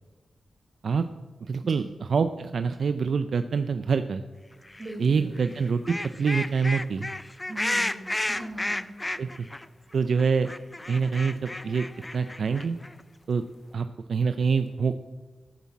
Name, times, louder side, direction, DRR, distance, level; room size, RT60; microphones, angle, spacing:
voice 1, 1.4-4.2 5.0-7.1 9.2-9.5 9.9-10.5 10.9-11.9 12.1-12.8 13.3-13.4 13.7-15.0, right 5 dB, 65° right, 10 dB, 0.4 m, -26 dB
sound 1, 4.7-4.9 5.4-9.6 9.9-10.0 10.2-13.0, left 1 dB, 15° left, 0.5 m, -32 dB
voice 2, 4.8-5.5 7.5-8.9, right 1 dB, 30° right, -1 dB, 4.0 m, -40 dB
14.5 x 7.1 x 7.2 m, 1.3 s
wide cardioid pair, 100°, 0 cm